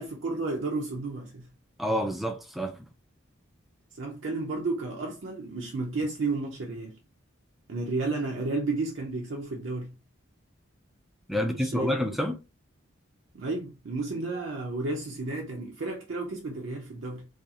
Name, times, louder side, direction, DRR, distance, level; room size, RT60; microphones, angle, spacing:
voice 1, 0.0-1.5 3.9-7.0 7.7-9.9 11.4-11.9 13.3-17.3, right 3 dB, 65° right, 0.5 m, -32 dB
voice 2, 1.8-2.9 11.3-12.3, equal, ahead, 0.3 m, -28 dB
2.4 x 2.3 x 2.7 m
head